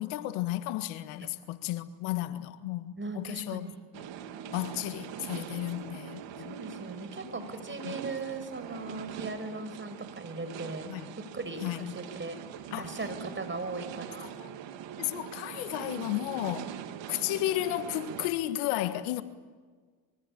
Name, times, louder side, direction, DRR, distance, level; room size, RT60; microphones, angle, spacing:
voice 1, 0.0-3.7 4.0-4.1 4.5-6.6 7.8-7.9 10.9-11.0 11.6-11.9 12.7-12.9 14.4-14.5 15.0-16.7 17.1-19.2, left 15 dB, 75° left, 1.7 m, -33 dB
voice 2, 3.0-3.8 6.4-10.9 11.2-12.4 12.8-14.3, right 3 dB, 25° right, 5.7 m, -38 dB
sound 1, 3.9-18.3, right 9 dB, 60° right, 2.5 m, -42 dB
25.0 x 24.0 x 8.8 m
hypercardioid pair, 70°, 49 cm